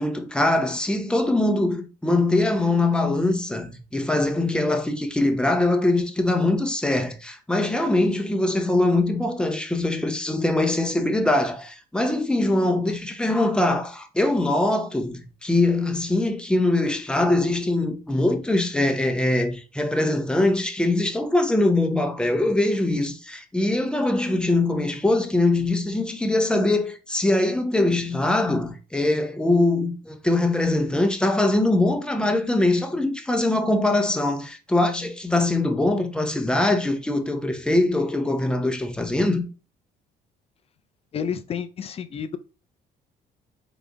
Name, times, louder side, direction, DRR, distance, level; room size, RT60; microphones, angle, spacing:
voice 1, 0.0-39.4, left 2 dB, 5° left, 0.8 m, -22 dB
voice 2, 41.1-42.4, left 7 dB, 35° left, 0.5 m, -30 dB
4.0 x 3.5 x 3.5 m
cardioid pair, 110°, 17 cm